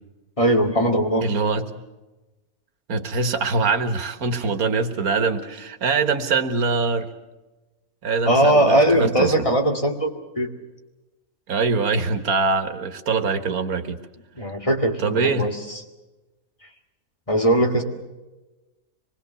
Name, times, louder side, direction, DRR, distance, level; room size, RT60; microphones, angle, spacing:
voice 1, 0.4-1.3 8.3-10.5 14.4-15.6 17.3-17.8, right 1 dB, 25° left, 2 dB, 2.2 m, -20 dB
voice 2, 1.2-1.7 2.9-7.1 8.0-9.3 11.5-14.0 15.0-15.5, right 4 dB, 90° right, 9 dB, 1.9 m, -23 dB
25.5 x 21.0 x 6.9 m, 1.1 s
omnidirectional pair, 1.5 m